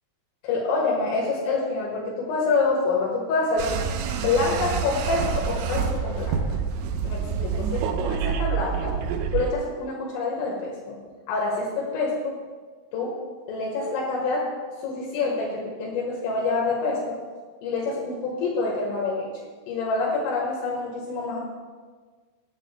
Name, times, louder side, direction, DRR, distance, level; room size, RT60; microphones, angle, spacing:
voice 1, 0.4-3.7 4.2-6.4 7.0-9.0 9.3-11.0 11.3-12.4 12.9-13.2 13.5-14.5 14.8-17.2 17.6-19.3 19.7-21.4, left 3 dB, 75° left, -3 dB, 3.9 m, -26 dB
sound 1, 3.6-9.5, right 7 dB, 80° right, 2.7 m, -27 dB
18.5 x 11.5 x 2.2 m, 1.5 s
omnidirectional pair, 6.0 m